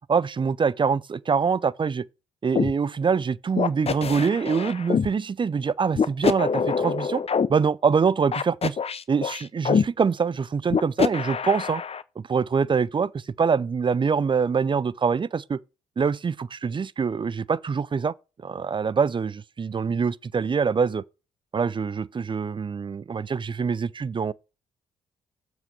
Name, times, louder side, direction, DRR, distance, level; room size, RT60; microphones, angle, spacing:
voice 1, 0.1-2.0 2.4-7.2 7.5-8.8 9.1-11.8 12.2-15.6 16.0-18.1 18.4-21.0 21.5-24.3, right 5 dB, 30° right, 0.5 m, -24 dB
sound 1, 2.5-2.7 3.6-5.1 5.9-7.5 8.3-9.8 10.7-12.0, left 6 dB, 35° left, 0.7 m, -24 dB
7.5 x 6.1 x 4.9 m
hypercardioid pair, 45°, 17 cm